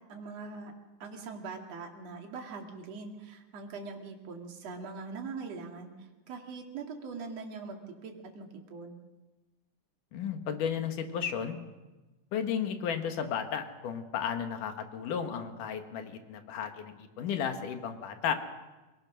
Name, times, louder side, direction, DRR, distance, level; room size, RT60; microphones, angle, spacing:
voice 1, 0.1-0.7 1.0-9.0, right 4 dB, 55° right, 2 dB, 3.3 m, -42 dB
voice 2, 10.1-11.6 12.3-18.3, left 8 dB, 90° left, 6 dB, 3.1 m, -33 dB
26.5 x 18.0 x 6.3 m, 1.2 s
omnidirectional pair, 3.6 m